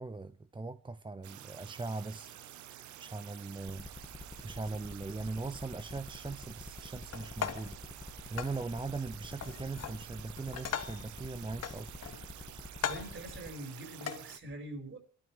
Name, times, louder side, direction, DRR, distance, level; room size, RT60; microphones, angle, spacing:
voice 1, 0.0-3.9 4.2-11.9, right 3 dB, 15° right, 0.6 m, -40 dB
sound 1, 1.2-14.4, right 11 dB, 75° right, 1.0 m, -50 dB
sound 2, 3.7-13.5, left 2 dB, 15° left, 1.6 m, -47 dB
sound 3, 7.1-7.8 8.4-8.6 9.4-10.0 10.4-11.1 11.6-12.3 12.7-13.2 14.0-14.2, left 8 dB, 55° left, 1.2 m, -38 dB
voice 2, 12.8-15.0, right 1 dB, 45° right, 4.8 m, -44 dB
29.0 x 13.0 x 3.2 m
cardioid pair, 90°, 30 cm